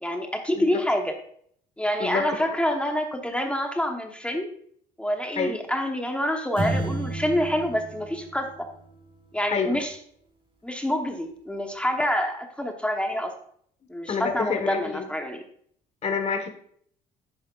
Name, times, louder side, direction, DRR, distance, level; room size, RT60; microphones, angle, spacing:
voice 1, 0.0-1.1 1.8-4.5 5.0-8.5 9.3-10.0 10.6-13.3 13.9-15.4, equal, 5° left, 4 dB, 1.0 m, -27 dB
sound 1, 6.6-9.2, right 2 dB, 30° right, 2.2 m, -32 dB
voice 2, 9.5-9.8 14.1-15.1 16.0-16.5, left 5 dB, 40° left, 5 dB, 1.3 m, -27 dB
10.5 x 8.5 x 2.4 m, 0.63 s
cardioid pair, 110°, 17 cm